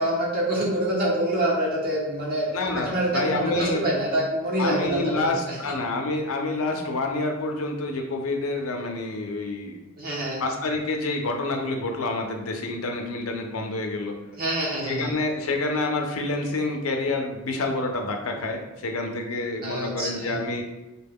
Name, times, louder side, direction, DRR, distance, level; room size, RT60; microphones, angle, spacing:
voice 1, 0.0-5.7 10.0-10.4 14.4-15.1 19.6-20.4, right 1 dB, 45° right, -4 dB, 0.9 m, -26 dB
voice 2, 2.5-3.9 4.6-9.8 10.4-14.2 14.9-20.6, left 2 dB, 90° left, 3 dB, 0.6 m, -28 dB
4.1 x 2.2 x 3.5 m, 1.0 s
head